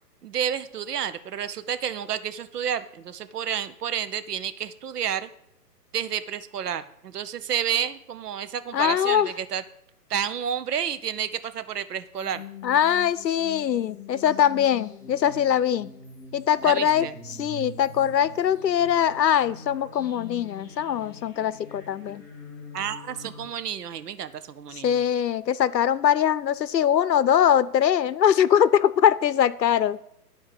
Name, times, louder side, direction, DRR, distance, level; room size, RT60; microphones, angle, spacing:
voice 1, 0.2-5.3 5.9-9.6 10.1-12.4 16.6-17.1 22.7-25.0, right 9 dB, 70° right, 12 dB, 1.0 m, -30 dB
voice 2, 8.7-9.3 12.6-15.9 16.3-22.2 24.7-30.0, left 9 dB, 85° left, 17 dB, 0.8 m, -22 dB
sound 1, 12.2-23.5, left 4 dB, 5° left, 0.9 m, -44 dB
11.5 x 4.7 x 8.0 m, 0.72 s
hypercardioid pair, 145°, 49 cm